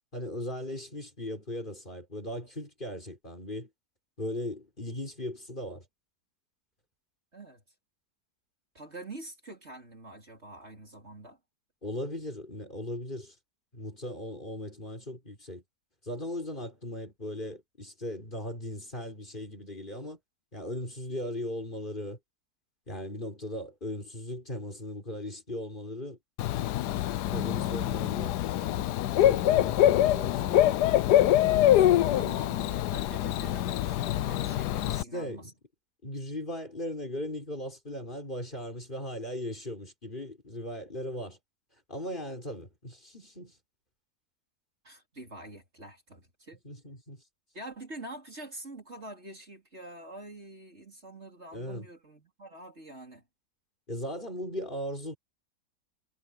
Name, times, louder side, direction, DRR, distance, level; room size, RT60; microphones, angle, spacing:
voice 1, 0.1-3.7 4.2-5.9 11.8-13.3 13.7-15.6 16.0-20.2 20.5-22.2 22.9-26.2 27.3-28.3 29.2-30.6 34.8-35.5 36.0-41.4 41.9-43.6 46.6-47.2 51.5-51.9 53.9-55.2, left 1 dB, 30° left, 5.9 m, -38 dB
voice 2, 7.3-7.6 8.7-11.4 31.5-35.5 44.8-46.6 47.5-53.2, right 1 dB, 40° right, 4.4 m, -45 dB
Bird / Cricket, 26.4-35.0, left 13 dB, 85° left, 1.2 m, -25 dB
omnidirectional pair, 1.7 m